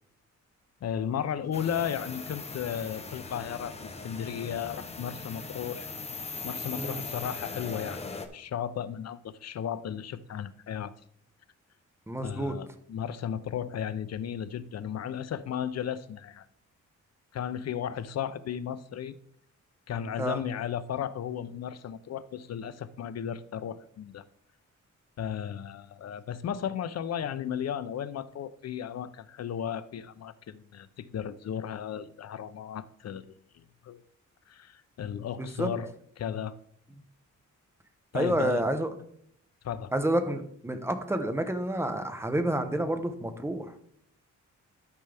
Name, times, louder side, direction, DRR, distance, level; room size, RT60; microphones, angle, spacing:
voice 1, 0.8-5.9 6.4-8.0 8.3-10.9 12.2-16.5 17.3-19.2 19.9-24.2 25.2-33.3 33.5-34.0 34.5-35.9 36.2-36.6 38.1-38.6 39.6-39.9, left 9 dB, 55° left, 0.6 m, -35 dB
sound 1, 1.5-8.3, left 4 dB, 20° left, 0.9 m, -40 dB
voice 2, 12.1-12.6 20.2-20.4 35.3-35.7 38.1-38.9 39.9-43.8, right 1 dB, 10° right, 0.9 m, -29 dB
13.0 x 5.5 x 3.4 m
wide cardioid pair, 130°, 31 cm